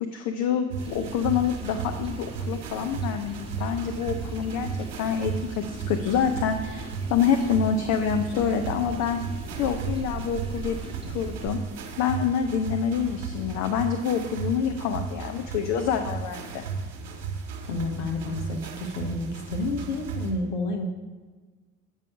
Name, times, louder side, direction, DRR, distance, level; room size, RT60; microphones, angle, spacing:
voice 1, 0.0-10.8 11.1-11.6 12.0-16.6, left 7 dB, 45° left, 6 dB, 0.6 m, -27 dB
sound 1, 0.7-20.3, right 5 dB, 65° right, 1.2 m, -35 dB
sound 2, 0.8-11.5, right 4 dB, 15° right, 0.9 m, -40 dB
voice 2, 17.7-20.9, left 2 dB, 65° left, 4 dB, 0.9 m, -30 dB
8.2 x 5.6 x 4.8 m, 1.4 s
figure-of-eight pair, 55°, 38 cm